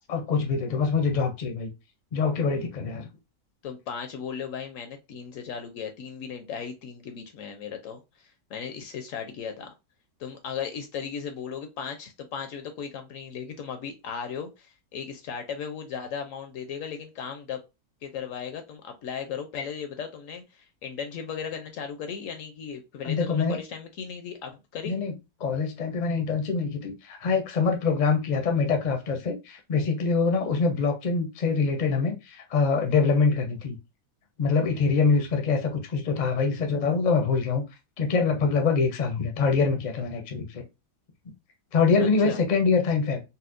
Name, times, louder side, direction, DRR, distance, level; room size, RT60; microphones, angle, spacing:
voice 1, 0.1-1.7 2.1-3.1 23.0-23.6 24.9-25.1 25.4-33.8 34.4-37.6 38.0-40.6 41.7-43.2, left 4 dB, 50° left, 0.5 m, -24 dB
voice 2, 3.6-9.7 10.2-17.6 18.0-25.0 42.2-42.4, left 7 dB, 70° left, 0.8 m, -36 dB
4.1 x 2.2 x 2.4 m
omnidirectional pair, 1.6 m